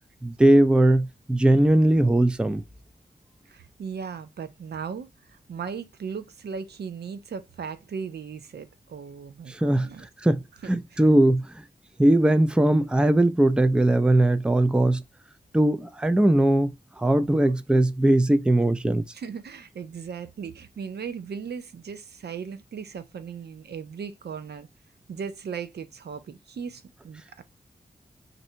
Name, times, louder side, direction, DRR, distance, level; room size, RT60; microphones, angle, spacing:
voice 1, 0.2-2.6 9.5-9.9 10.2-10.4 10.7-11.5 12.0-15.0 15.5-16.7 17.0-19.0, right 1 dB, 5° right, 0.4 m, -20 dB
voice 2, 3.5-5.1 5.5-10.1 10.6-11.0 17.4-17.5 19.1-24.7 25.1-27.4, right 6 dB, 85° right, 0.5 m, -37 dB
2.6 x 2.6 x 4.2 m
wide cardioid pair, 80°, 17 cm